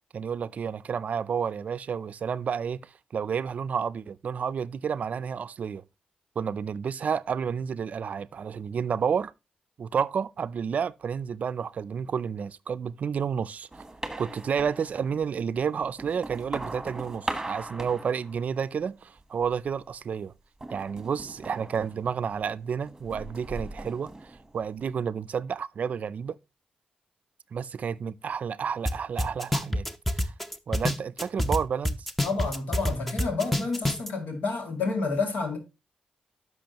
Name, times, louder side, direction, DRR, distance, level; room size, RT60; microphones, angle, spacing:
voice 1, 0.1-5.8 6.4-9.3 9.8-13.7 14.2-20.3 20.7-26.4 27.5-29.9 30.2-30.3 30.7-32.1, right 7 dB, 60° right, 0.4 m, -30 dB
sound 1, 13.7-15.3 15.8-18.8 19.2-19.8 20.6-22.5 22.9-24.9, right 2 dB, 15° right, 1.3 m, -39 dB
sound 2, 28.9-29.0 29.2-31.6 31.9-34.1, left 1 dB, 5° left, 0.7 m, -26 dB
voice 2, 32.2-35.6, left 4 dB, 80° left, 2.3 m, -29 dB
10.5 x 6.3 x 2.9 m
cardioid pair, 80°, 3 cm